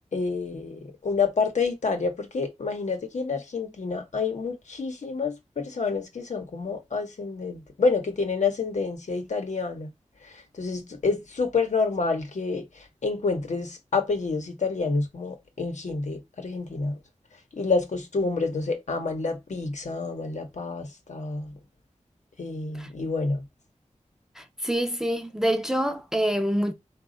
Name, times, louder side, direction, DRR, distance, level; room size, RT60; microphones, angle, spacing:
voice 1, 0.1-9.9 10.5-17.0 17.5-21.5 22.4-23.4, left 4 dB, 75° left, 0.9 m, -28 dB
voice 2, 24.4-26.7, equal, 5° right, 0.6 m, -26 dB
4.1 x 2.3 x 3.8 m
wide cardioid pair, 90°, 12 cm